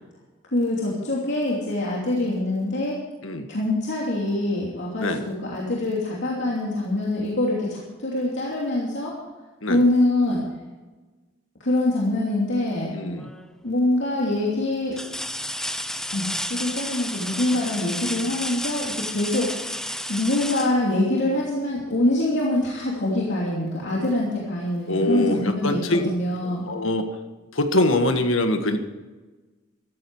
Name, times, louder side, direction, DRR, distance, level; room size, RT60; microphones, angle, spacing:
voice 1, 0.5-3.0 3.5-5.1 5.4-9.2 9.7-10.4 11.6-12.9 13.6-15.0 16.1-19.6 20.1-26.6, left 1 dB, 60° left, -4 dB, 2.8 m, -24 dB
voice 2, 12.9-13.3 24.9-26.1 26.7-27.1 27.5-28.8, left 1 dB, 85° left, 7 dB, 1.6 m, -23 dB
sound 1, 13.2-13.6 14.2-14.3 14.9-21.6 23.4-23.5 24.0-25.0 26.3-26.4, left 1 dB, 5° left, 0.7 m, -32 dB
14.0 x 14.0 x 4.8 m, 1.2 s
head